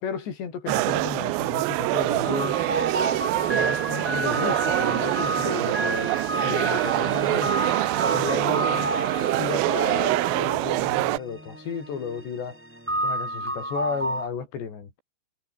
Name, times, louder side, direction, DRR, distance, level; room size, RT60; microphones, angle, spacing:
voice 1, 0.0-2.6 3.5-7.5 8.1-9.0 9.4-12.6 13.0-15.0, left 7 dB, 90° left, 6.7 m, -33 dB
sound 1, 0.7-11.2, right 20 dB, 85° right, 2.1 m, -25 dB
sound 2, 2.2-14.3, right 1 dB, 5° right, 1.1 m, -31 dB
omnidirectional pair, 4.9 m